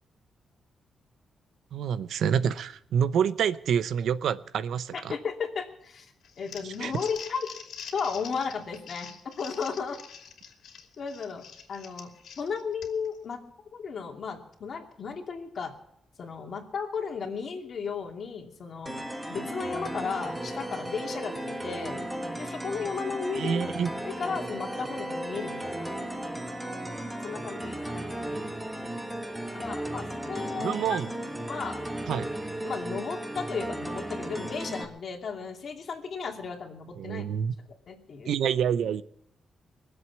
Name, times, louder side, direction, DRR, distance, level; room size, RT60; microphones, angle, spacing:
voice 1, 1.7-5.1 6.6-6.9 23.3-23.9 30.6-31.1 32.1-32.3 37.0-37.5 38.2-39.0, right 8 dB, 80° right, 0.7 m, -27 dB
voice 2, 4.9-7.5 7.9-10.0 11.0-12.1 12.4-13.4 13.7-15.7 16.2-18.9 19.3-22.0 22.4-23.7 24.0-25.9 27.2-28.1 29.5-31.0 31.5-31.8 32.6-37.2 37.9-38.3, left 5 dB, 50° left, 2.6 m, -34 dB
Crumpling crinkling, 6.2-13.2, left 7 dB, 85° left, 2.6 m, -45 dB
sound 1, 18.9-34.9, right 1 dB, 5° right, 1.5 m, -35 dB
22.5 x 7.9 x 7.2 m
cardioid pair, 135°, 0 cm